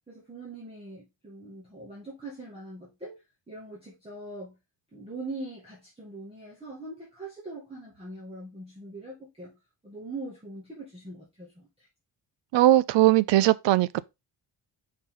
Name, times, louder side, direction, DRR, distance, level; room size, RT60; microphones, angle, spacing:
voice 1, 0.1-3.2 3.5-4.6 4.9-9.6 9.8-11.9, right 2 dB, 10° right, 2.0 m, -42 dB
voice 2, 12.5-14.1, right 15 dB, 70° right, 0.5 m, -20 dB
5.4 x 4.7 x 3.7 m
cardioid pair, 170°, 46 cm